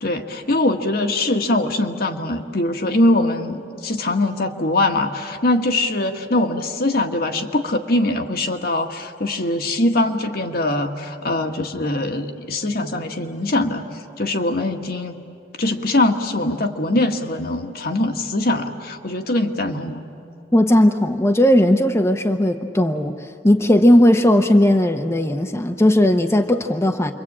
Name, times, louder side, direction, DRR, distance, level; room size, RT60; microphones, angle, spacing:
voice 1, 0.0-13.8 14.2-15.2 15.6-20.0, left 2 dB, 60° left, 4 dB, 1.6 m, -22 dB
voice 2, 20.5-27.1, left 1 dB, 15° left, 4 dB, 0.8 m, -16 dB
29.0 x 23.5 x 8.7 m, 2.6 s
head